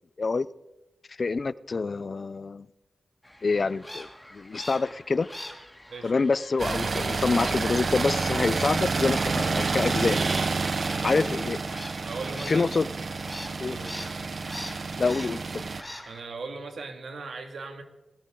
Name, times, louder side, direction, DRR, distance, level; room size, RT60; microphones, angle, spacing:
voice 1, 1.2-2.7 3.4-5.3 6.0-10.2 11.0-11.6 12.5-12.9 13.6-13.8 15.0-15.6, left 4 dB, 50° left, 0.5 m, -26 dB
sound 1, 3.2-16.2, left 1 dB, 10° left, 2.6 m, -45 dB
sound 2, 6.6-15.8, right 4 dB, 55° right, 0.8 m, -29 dB
voice 2, 10.9-11.4 12.0-12.8 13.6-13.9 16.0-17.8, right 3 dB, 85° right, 2.2 m, -39 dB
20.0 x 16.5 x 3.8 m
wide cardioid pair, 80°, 0 cm